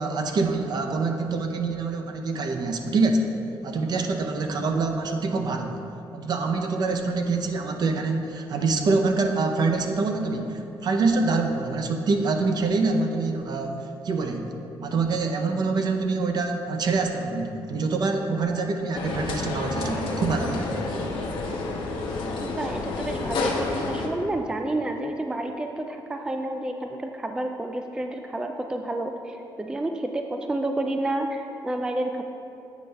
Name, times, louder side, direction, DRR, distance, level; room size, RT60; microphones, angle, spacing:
voice 1, 0.0-3.3 3.6-5.8 6.1-21.0, right 3 dB, 55° right, 4 dB, 0.6 m, -25 dB
sound 1, 18.9-24.1, left 3 dB, 80° left, 0.9 m, -29 dB
voice 2, 22.4-32.2, right 1 dB, 10° right, 4 dB, 0.3 m, -30 dB
8.3 x 5.3 x 3.4 m, 2.8 s
cardioid pair, 115°, 9 cm